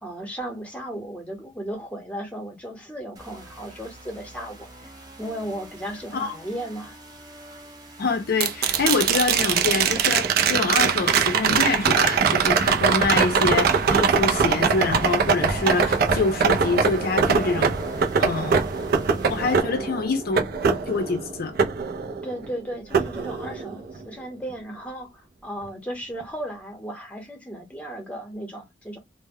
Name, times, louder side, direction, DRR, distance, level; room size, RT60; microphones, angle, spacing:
voice 1, 0.0-4.7 5.2-7.0 19.5-19.8 22.2-29.0, right 1 dB, 10° left, 0.8 m, -35 dB
sound 1, 3.2-19.6, right 1 dB, 20° right, 0.7 m, -45 dB
voice 2, 8.0-17.8 18.2-18.6 19.3-20.4 20.9-21.5, left 3 dB, 55° left, 0.4 m, -25 dB
sound 2, 8.4-22.5 22.9-24.0 26.2-26.3, right 6 dB, 55° right, 0.4 m, -22 dB
2.1 x 2.0 x 3.4 m
head